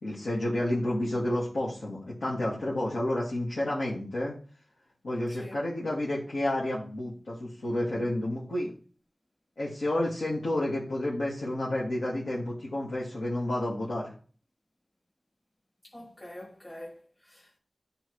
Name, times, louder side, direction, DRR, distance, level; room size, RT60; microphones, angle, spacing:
voice 1, 0.0-4.3 5.0-8.7 9.6-14.1, left 1 dB, 85° left, 1.8 m, -30 dB
voice 2, 15.8-17.6, left 1 dB, 25° left, 1.6 m, -46 dB
9.2 x 3.8 x 3.1 m
wide cardioid pair, 55°, 0 cm